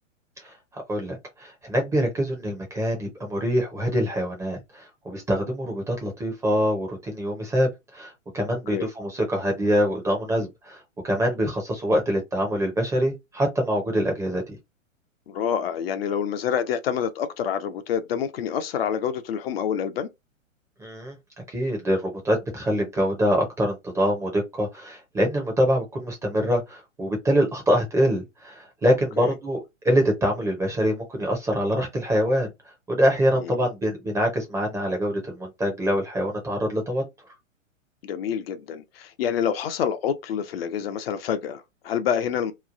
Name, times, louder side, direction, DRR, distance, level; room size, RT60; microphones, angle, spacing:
voice 1, 0.4-14.6 20.8-21.2 21.5-29.6 29.8-32.5 32.9-37.0, equal, 10° right, 0.6 m, -25 dB
voice 2, 15.3-20.1 29.2-29.3 33.4-33.7 38.0-42.5, left 8 dB, 50° left, 0.5 m, -27 dB
3.0 x 2.2 x 2.4 m
figure-of-eight pair, 115°, 40 cm